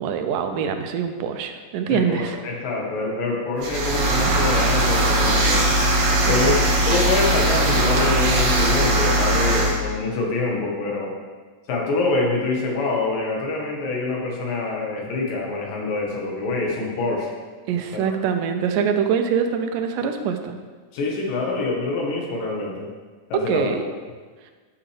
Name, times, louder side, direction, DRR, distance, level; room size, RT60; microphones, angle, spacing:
voice 1, 0.0-2.4 6.3-6.5 17.7-20.6 23.5-23.8, right 7 dB, 85° right, 6 dB, 2.3 m, -24 dB
voice 2, 1.9-5.7 6.3-11.1 11.7-17.3 17.9-18.2 20.9-22.9 23.3-23.7, left 3 dB, 85° left, -1 dB, 3.1 m, -25 dB
sound 1, 3.6-9.8, right 1 dB, 55° right, 1.3 m, -19 dB
12.0 x 5.9 x 3.3 m, 1.4 s
omnidirectional pair, 3.8 m